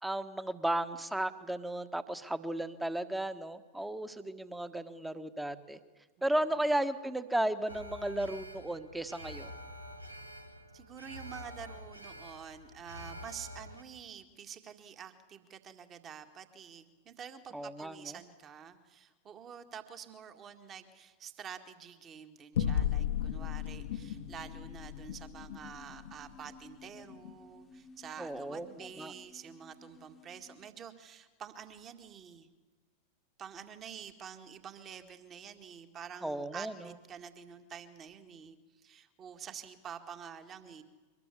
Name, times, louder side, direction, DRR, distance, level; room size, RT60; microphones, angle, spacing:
voice 1, 0.0-5.8 6.2-9.5 17.5-18.2 28.2-29.1 36.2-36.9, right 1 dB, 5° right, 12 dB, 1.3 m, -34 dB
Alarm, 7.7-13.8, equal, 85° right, 1.4 m, -47 dB
voice 2, 10.7-32.5 33.4-40.8, right 8 dB, 25° right, 8 dB, 2.0 m, -48 dB
sound 1, 22.5-27.4, left 10 dB, 60° left, 1.0 m, -36 dB
sound 2, 23.2-30.7, left 5 dB, 20° left, 1.2 m, -55 dB
24.0 x 20.5 x 8.4 m, 1.3 s
figure-of-eight pair, 90°, 0 cm